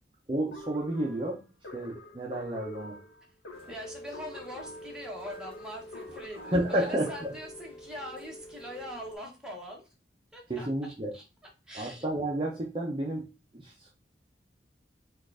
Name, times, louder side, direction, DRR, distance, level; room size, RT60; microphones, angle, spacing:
voice 1, 0.3-1.4 1.7-3.0 6.4-7.3 10.5-11.1 11.7-13.3 13.5-13.9, right 1 dB, 30° right, -2 dB, 0.6 m, -31 dB
sound 1, 0.5-7.6, left 1 dB, 85° left, 1.1 m, -46 dB
Rain, 3.5-9.1, equal, 30° left, 0.9 m, -47 dB
voice 2, 3.7-9.9 10.3-11.2 11.7-12.1, equal, 5° right, -2 dB, 1.1 m, -42 dB
4.5 x 2.4 x 4.7 m, 0.30 s
head